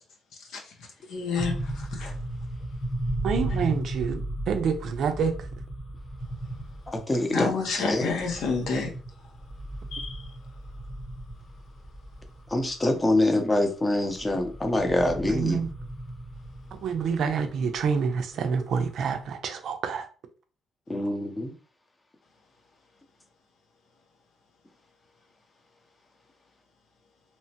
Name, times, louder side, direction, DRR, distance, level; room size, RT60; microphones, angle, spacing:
voice 1, 1.1-2.1 7.3-8.9 9.9-10.3, left 4 dB, 80° left, 0.7 m, -29 dB
sound 1, 1.4-19.2, right 1 dB, 45° left, 1.0 m, -36 dB
voice 2, 3.2-5.5 15.3-15.7 16.8-20.1, right 6 dB, 70° right, 0.4 m, -27 dB
voice 3, 6.9-8.0 12.5-15.6 20.9-21.5, left 1 dB, 20° left, 0.7 m, -25 dB
3.0 x 2.1 x 2.8 m
cardioid pair, 90°, 0 cm